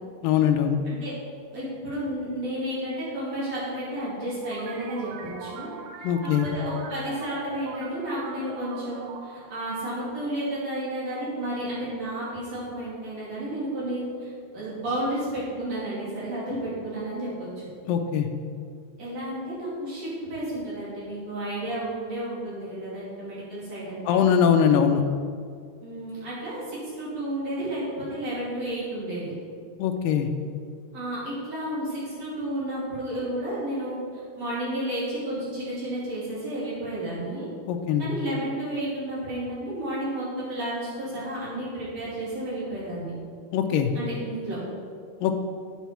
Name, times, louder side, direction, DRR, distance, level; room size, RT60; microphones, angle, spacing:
voice 1, 0.2-0.8 6.0-6.5 17.9-18.3 24.0-25.0 29.8-30.3 37.7-38.1 43.5-43.9 45.2-45.4, left 8 dB, 85° left, 5 dB, 2.3 m, -22 dB
voice 2, 1.5-5.7 6.2-17.7 19.0-24.3 25.8-29.3 30.9-37.5 38.0-43.1 43.9-44.6, right 1 dB, 50° right, -9 dB, 3.8 m, -32 dB
sound 1, 4.4-10.7, right 5 dB, 80° right, 2.4 m, -42 dB
9.1 x 7.1 x 4.4 m, 2.1 s
omnidirectional pair, 3.9 m